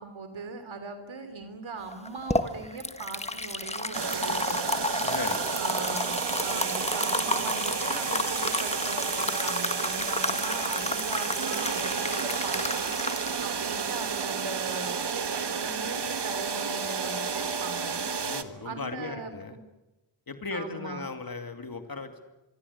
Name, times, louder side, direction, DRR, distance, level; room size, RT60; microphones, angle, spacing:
voice 1, 0.0-4.7 5.6-6.1 6.4-12.9 13.4-18.1 18.6-19.6 20.5-21.0, right 4 dB, 75° right, 8 dB, 3.2 m, -39 dB
sound 1, 1.9-14.9, left 2 dB, 15° left, 1.6 m, -32 dB
sound 2, 3.9-18.4, right 6 dB, 55° right, 1.7 m, -31 dB
voice 2, 5.0-5.4 18.2-19.6 20.3-22.3, left 3 dB, 45° left, 7 dB, 2.6 m, -37 dB
26.0 x 24.0 x 8.4 m, 1.0 s
wide cardioid pair, 115°, 48 cm